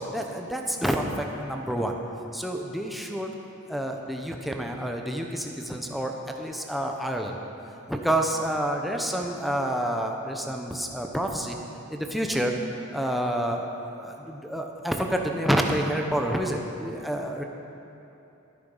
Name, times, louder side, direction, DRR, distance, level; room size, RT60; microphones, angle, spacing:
voice 1, 0.0-2.0 2.3-3.3 3.7-7.4 7.9-11.6 11.9-12.5 12.9-13.7 14.0-17.4, right 1 dB, ahead, 1 dB, 0.8 m, -28 dB
13.0 x 11.0 x 5.5 m, 2.9 s
head